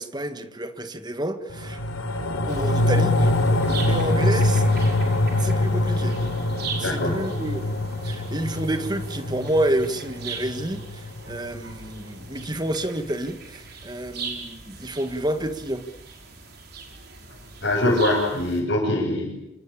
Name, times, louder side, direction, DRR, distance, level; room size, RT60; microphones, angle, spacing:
voice 1, 0.0-1.8 2.5-3.3 3.6-4.6 5.4-6.2 6.8-7.7 8.0-15.8, right 1 dB, 20° right, 1.6 m, -29 dB
sound 1, 1.5-12.1 12.5-12.6, left 1 dB, 90° left, 3.5 m, -24 dB
sound 2, 2.5-18.6, right 5 dB, 50° right, 5.5 m, -40 dB
voice 2, 6.8-7.2 17.6-19.3, left 1 dB, 50° left, 7.2 m, -23 dB
26.0 x 25.5 x 8.7 m
head